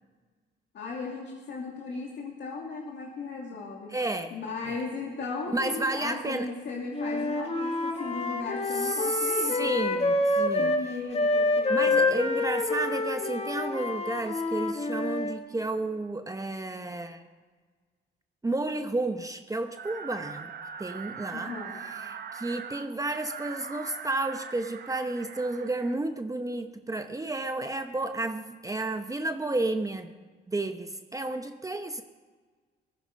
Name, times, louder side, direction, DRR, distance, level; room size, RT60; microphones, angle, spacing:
voice 1, 0.7-3.9 4.3-10.0 10.6-12.2 21.3-21.8, left 4 dB, 60° left, -2 dB, 2.5 m, -37 dB
voice 2, 3.9-4.4 5.5-6.5 8.8-9.3 9.5-10.7 11.7-17.2 18.4-20.5 20.8-21.5 21.9-30.1 30.5-32.0, right 2 dB, 15° right, 7 dB, 0.9 m, -31 dB
Wind instrument woodwind instrument, 6.9-10.8 11.1-15.4, left 2 dB, 30° left, 1.9 m, -27 dB
sound 1, 19.8-26.0, right 6 dB, 50° right, 1.0 m, -41 dB
17.5 x 14.0 x 5.3 m, 1.5 s
cardioid pair, 90°, 20 cm